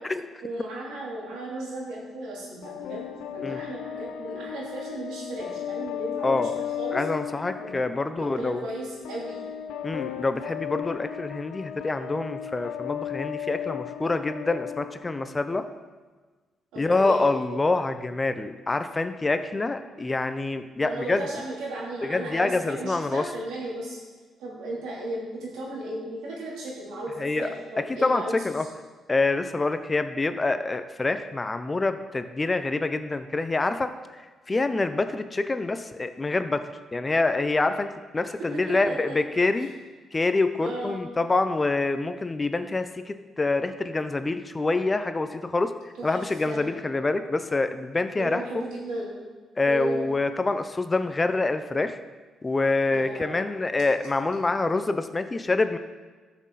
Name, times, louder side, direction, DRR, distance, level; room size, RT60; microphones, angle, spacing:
voice 1, 0.4-6.5 6.8-7.0 7.6-7.7 8.2-9.5 16.7-17.2 20.8-24.0 24.4-28.7 38.5-39.2 39.6-39.7 40.6-41.0 46.0-46.2 46.4-46.6 48.2-49.2 49.7-50.0 52.9-53.7, right 1 dB, 90° right, -5 dB, 3.3 m, -35 dB
sound 1, 2.6-15.6, left 10 dB, 90° left, 0.5 m, -36 dB
voice 2, 6.2-6.6 6.9-8.6 9.8-15.6 16.8-21.2 22.0-23.3 27.2-27.5 27.9-28.6 29.1-39.7 40.1-45.7 46.0-48.4 49.6-52.0 52.4-55.8, left 3 dB, 25° left, 9 dB, 0.6 m, -26 dB
13.5 x 6.4 x 4.1 m, 1.4 s
cardioid pair, 90°, 0 cm